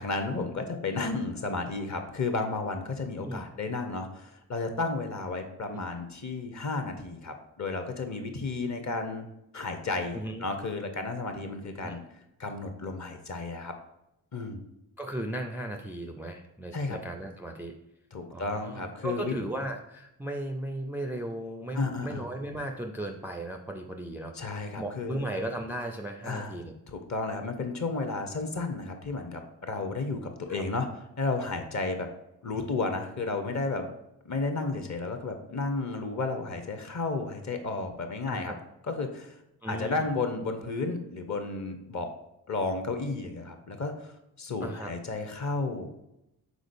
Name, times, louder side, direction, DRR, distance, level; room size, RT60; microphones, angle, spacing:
voice 1, 0.0-9.3 9.5-12.0 12.4-13.7 14.3-14.6 16.7-17.0 18.1-19.3 21.7-22.2 24.3-25.4 26.2-26.6 26.9-30.9 31.2-32.1 32.4-33.9 34.2-38.5 38.9-39.4 39.7-42.1 42.5-46.0, left 3 dB, 35° left, 6 dB, 0.9 m, -32 dB
voice 2, 10.1-10.5 11.8-12.0 15.0-17.7 18.3-26.7 30.5-30.6 38.3-38.6 39.6-40.1 44.6-44.9, right 1 dB, 5° right, 3 dB, 0.4 m, -36 dB
5.1 x 3.7 x 2.6 m, 0.86 s
hypercardioid pair, 45°, 47 cm